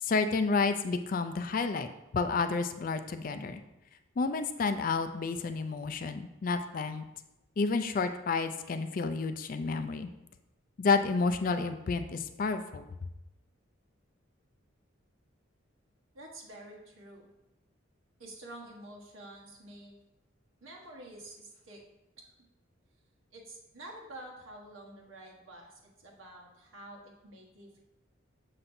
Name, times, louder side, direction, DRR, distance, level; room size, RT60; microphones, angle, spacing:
voice 1, 0.0-3.6 4.2-7.0 7.6-10.1 10.8-12.9, left 4 dB, 45° left, 9 dB, 0.3 m, -30 dB
voice 2, 16.1-17.3 18.2-19.9 20.6-21.8 22.2-22.5 23.3-27.8, right 1 dB, 85° right, -1 dB, 1.3 m, -49 dB
6.6 x 5.8 x 2.6 m, 0.93 s
head